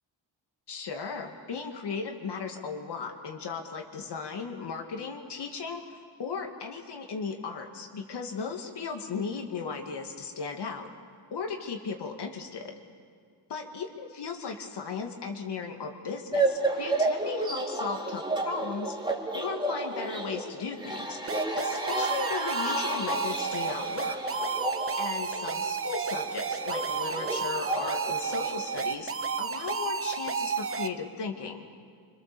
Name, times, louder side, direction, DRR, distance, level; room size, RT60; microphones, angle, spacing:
voice 1, 0.7-10.9 11.3-12.7 13.5-19.0 19.3-21.2 21.6-24.2 25.0-31.6, left 5 dB, 60° left, 2 dB, 2.3 m, -36 dB
sound 1, 16.3-28.8, right 2 dB, 10° right, 2.4 m, -32 dB
sound 2, 21.3-30.9, right 5 dB, 30° right, 1.0 m, -32 dB
26.0 x 25.5 x 7.1 m, 2.1 s
cardioid pair, 105°, 45 cm